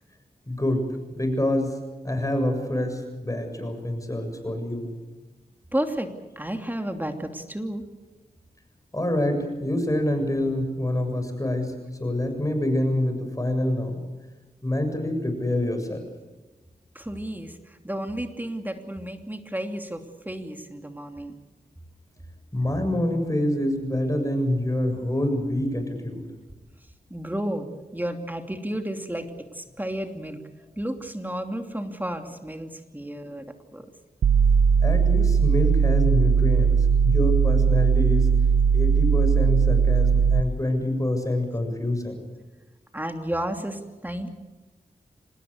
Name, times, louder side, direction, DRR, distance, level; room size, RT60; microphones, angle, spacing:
voice 1, 0.5-1.8 2.0-4.9 8.9-11.7 12.0-14.0 14.6-16.0 22.5-26.3 34.8-36.8 37.0-38.3 38.7-42.2, left 1 dB, 20° left, 5 dB, 7.3 m, -26 dB
voice 2, 5.7-6.1 6.4-7.8 16.9-21.3 27.1-27.7 27.9-30.4 30.8-33.8 42.9-44.3, right 1 dB, 10° right, 5 dB, 2.9 m, -32 dB
sound 1, 34.2-40.4, right 6 dB, 90° right, 0.6 m, -19 dB
26.0 x 20.0 x 6.7 m, 1.2 s
cardioid pair, 55°, 16 cm